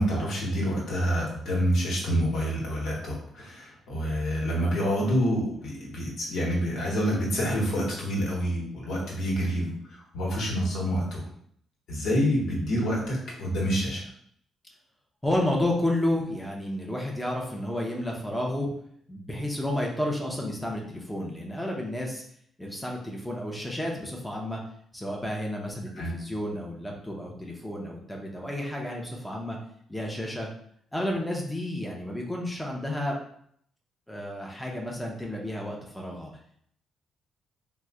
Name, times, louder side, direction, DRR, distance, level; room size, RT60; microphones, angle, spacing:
voice 1, 0.0-11.3 11.9-14.0 26.0-26.1, equal, 75° left, -4 dB, 1.1 m, -27 dB
voice 2, 15.2-18.7 19.1-22.2 22.6-24.6 24.9-29.6 29.9-30.5 30.9-33.2 34.1-36.3, left 1 dB, 5° left, -1 dB, 0.6 m, -31 dB
3.0 x 2.1 x 3.5 m, 0.65 s
cardioid pair, 90°, 0 cm